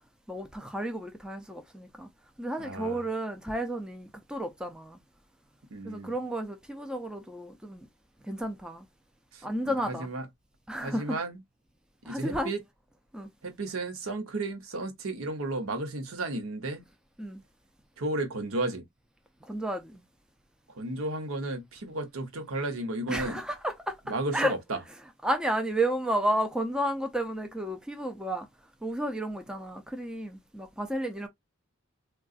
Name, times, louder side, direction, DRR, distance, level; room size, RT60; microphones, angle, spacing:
voice 1, 0.3-2.1 2.4-5.0 5.8-7.9 8.2-8.9 9.4-10.1 10.7-11.2 12.0-12.5 13.1-13.3 17.2-17.4 19.4-20.0 23.1-24.0 24.3-24.5 25.2-28.5 28.8-31.3, right 1 dB, 5° right, 0.4 m, -32 dB
voice 2, 2.6-3.0 5.7-6.1 9.3-10.2 10.8-11.4 12.1-12.6 13.4-16.8 18.0-18.8 20.7-23.4 24.1-24.8, right 2 dB, 85° right, 0.8 m, -33 dB
3.7 x 2.3 x 2.4 m
head